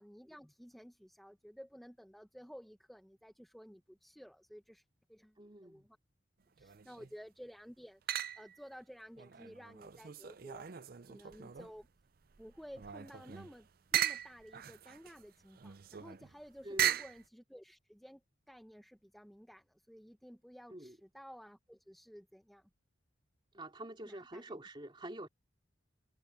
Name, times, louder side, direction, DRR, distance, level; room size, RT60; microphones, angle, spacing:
voice 1, 0.0-4.8 5.1-5.3 5.6-6.0 6.6-10.7 11.0-11.9 12.4-13.7 13.9-18.2 18.5-22.7 24.0-24.6, equal, ahead, 1.2 m, -54 dB
voice 2, 5.4-5.8 16.6-17.0 20.7-21.0 23.5-25.3, right 1 dB, 25° right, 2.8 m, -46 dB
sound 1, 6.6-7.1 8.1-8.7 9.2-11.9 12.3-17.2, right 10 dB, 50° right, 0.5 m, -38 dB
head